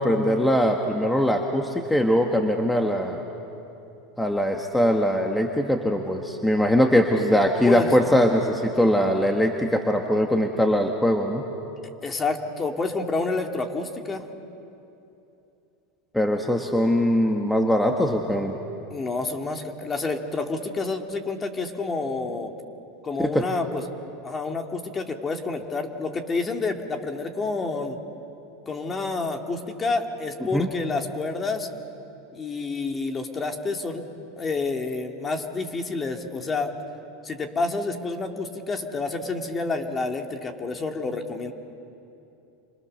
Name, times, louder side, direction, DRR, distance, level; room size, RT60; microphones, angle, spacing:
voice 1, 0.0-3.2 4.2-11.5 16.1-18.6 23.3-23.5 30.5-30.7, equal, 5° left, 3 dB, 1.8 m, -21 dB
voice 2, 12.0-14.3 18.9-22.5 23.0-23.8 24.2-28.0 28.7-31.7 32.3-34.1 34.3-36.7 37.2-41.5, left 3 dB, 25° left, 4 dB, 2.5 m, -29 dB
28.5 x 26.0 x 6.7 m, 2.9 s
hypercardioid pair, 100°, 0 cm